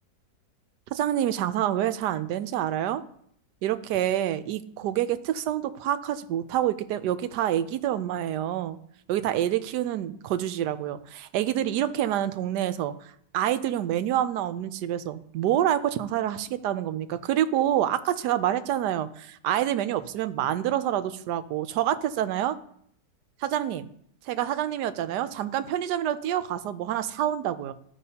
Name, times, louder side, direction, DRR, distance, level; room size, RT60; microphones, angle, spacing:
voice 1, 0.9-3.0 3.6-8.8 9.1-22.5 23.4-23.9 24.3-27.7, right 11 dB, 75° right, 12 dB, 1.1 m, -27 dB
14.0 x 5.4 x 2.8 m, 0.67 s
omnidirectional pair, 1.9 m